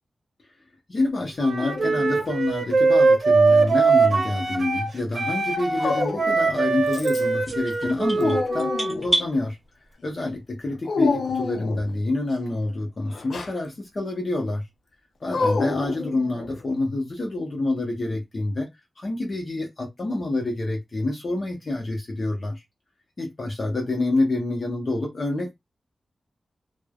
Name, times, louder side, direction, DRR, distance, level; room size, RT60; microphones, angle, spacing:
voice 1, 0.9-8.7 9.0-9.6 10.0-14.6 15.2-18.7 19.0-22.6 23.2-25.6, left 2 dB, 40° left, 0.7 m, -27 dB
Wind instrument woodwind instrument, 1.4-4.9 5.1-9.0, right 4 dB, 50° right, 0.8 m, -21 dB
Dog, 1.6-2.4 3.5-4.3 5.8-6.5 6.9-7.4 7.8-9.1 10.9-11.9 13.1-13.6 15.3-16.6, left 4 dB, 75° left, 0.4 m, -28 dB
sound 1, 7.4-9.3, right 1 dB, 10° left, 1.5 m, -28 dB
3.1 x 2.0 x 2.2 m
wide cardioid pair, 155°, 0 cm